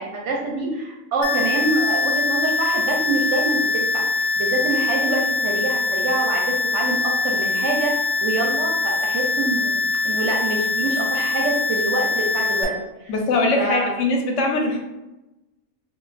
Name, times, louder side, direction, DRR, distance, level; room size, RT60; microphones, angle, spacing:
voice 1, 0.0-12.7 13.0-13.1 13.6-13.9, right 2 dB, 65° right, -1 dB, 0.8 m, -26 dB
sound 1, 1.2-12.6, left 3 dB, 90° left, 1.1 m, -23 dB
voice 2, 13.1-14.8, left 2 dB, 70° left, 2 dB, 0.8 m, -21 dB
2.3 x 2.3 x 3.9 m, 0.99 s
omnidirectional pair, 1.5 m